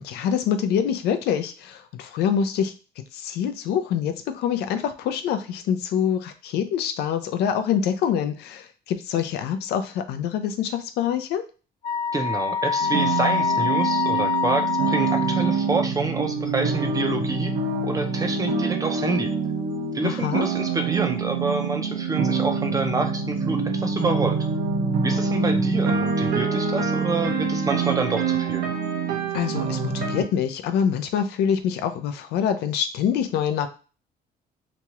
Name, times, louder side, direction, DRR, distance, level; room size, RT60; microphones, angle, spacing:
voice 1, 0.0-2.7 3.1-11.4 20.0-20.5 29.3-33.7, left 8 dB, 75° left, 9 dB, 0.4 m, -25 dB
Wind instrument woodwind instrument, 11.8-15.7, left 6 dB, 45° left, 1.1 m, -25 dB
voice 2, 12.1-17.5 17.8-19.3 19.9-24.4 25.0-28.7, right 3 dB, 20° right, 5 dB, 0.5 m, -27 dB
C Minor Melancholia, 12.8-30.2, right 5 dB, 75° right, 0.8 m, -25 dB
3.0 x 2.3 x 2.9 m, 0.35 s
cardioid pair, 110°, 17 cm